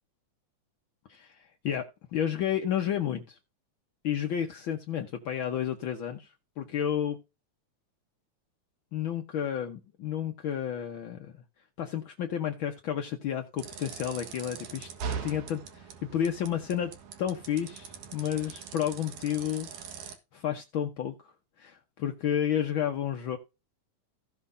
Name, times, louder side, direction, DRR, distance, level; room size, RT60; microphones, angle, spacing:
voice 1, 1.1-3.4 4.0-7.2 8.9-11.4 11.8-14.9 15.2-16.9 17.2-19.7 20.3-21.1 21.6-23.4, left 9 dB, 70° left, 1.2 m, -31 dB
Reverse bicycle gears, 13.6-20.2, right 6 dB, 80° right, 3.0 m, -41 dB
16.5 x 5.9 x 2.6 m
omnidirectional pair, 3.6 m